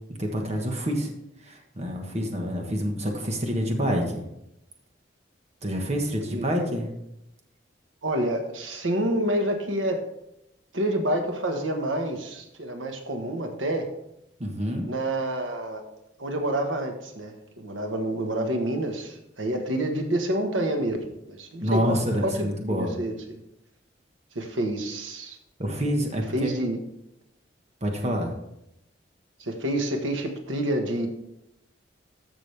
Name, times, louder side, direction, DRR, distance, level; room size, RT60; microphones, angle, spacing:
voice 1, 0.2-1.1 1.4-4.2 5.6-6.9 14.4-14.9 21.6-23.0 25.6-26.5 27.8-28.3, equal, 35° right, 2 dB, 1.4 m, -27 dB
voice 2, 8.0-10.0 10.7-13.9 14.9-15.8 16.2-23.1 24.3-25.4 26.3-26.8 29.4-31.1, right 1 dB, 90° right, 3 dB, 1.4 m, -28 dB
13.5 x 6.2 x 3.4 m, 0.84 s
head